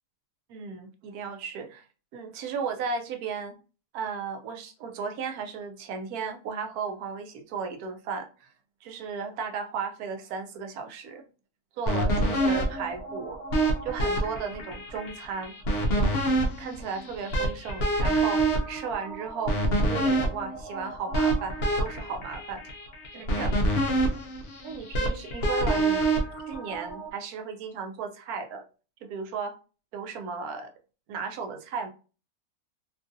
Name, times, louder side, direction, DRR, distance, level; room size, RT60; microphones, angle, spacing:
voice 1, 0.5-1.9 2.1-3.6 3.9-8.5 8.8-11.3 11.8-13.4 13.8-15.5 15.9-16.1 16.6-19.6 19.8-22.6 23.1-24.1 24.6-26.1 26.5-28.6 29.0-29.5 29.9-30.7 31.1-31.9, right 5 dB, 75° right, 5 dB, 1.0 m, -35 dB
sound 1, 11.9-27.1, right 1 dB, 65° left, 0.6 m, -27 dB
2.9 x 2.4 x 2.5 m, 0.35 s
omnidirectional pair, 1.7 m